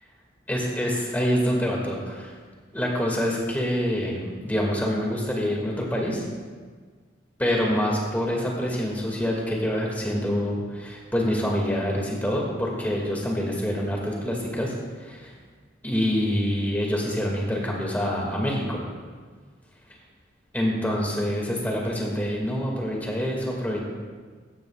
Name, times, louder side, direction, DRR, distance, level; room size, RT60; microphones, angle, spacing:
voice 1, 0.5-2.3 2.7-6.3 7.4-14.7 15.0-15.3 15.8-18.8 20.5-23.8, equal, 10° left, -2 dB, 2.1 m, -26 dB
16.5 x 14.0 x 2.4 m, 1.5 s
head